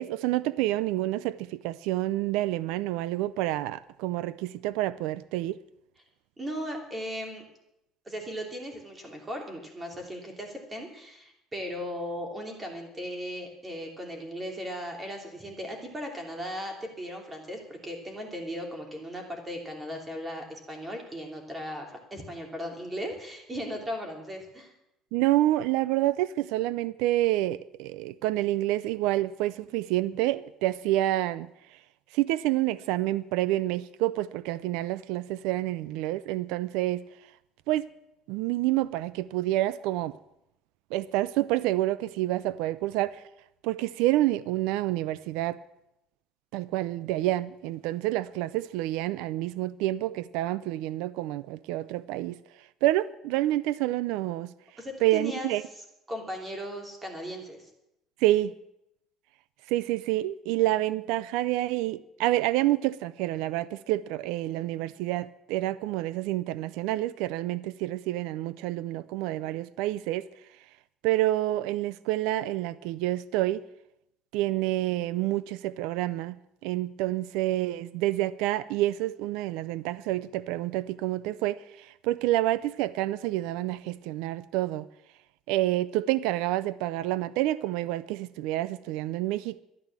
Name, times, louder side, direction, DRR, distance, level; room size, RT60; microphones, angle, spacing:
voice 1, 0.0-5.6 25.1-31.5 32.1-37.0 37.7-37.8 38.3-40.1 40.9-43.2 43.6-45.6 46.5-52.4 52.8-54.5 55.0-55.6 58.2-58.5 59.7-70.3 71.0-73.6 74.3-76.4 76.6-84.9 85.5-89.6, right 15 dB, 85° right, 0.5 m, -28 dB
voice 2, 6.4-7.4 8.0-24.7 54.8-55.5 56.1-57.7, equal, 15° right, 3.0 m, -37 dB
12.5 x 11.0 x 7.4 m
cardioid pair, 150°, 0 cm